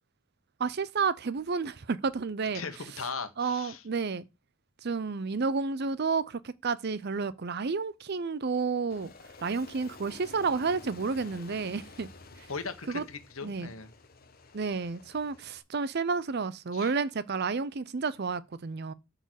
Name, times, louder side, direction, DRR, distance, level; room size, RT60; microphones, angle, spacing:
voice 1, 0.6-2.6 3.4-4.2 4.8-9.1 9.4-12.1 12.9-13.0 13.4-13.7 14.5-18.9, right 4 dB, 50° right, 0.5 m, -31 dB
voice 2, 2.5-3.8 12.5-13.9 16.7-16.9, left 5 dB, 75° left, 1.3 m, -38 dB
Aircraft, 8.9-15.6, left 3 dB, 45° left, 1.0 m, -51 dB
8.1 x 3.9 x 6.3 m
head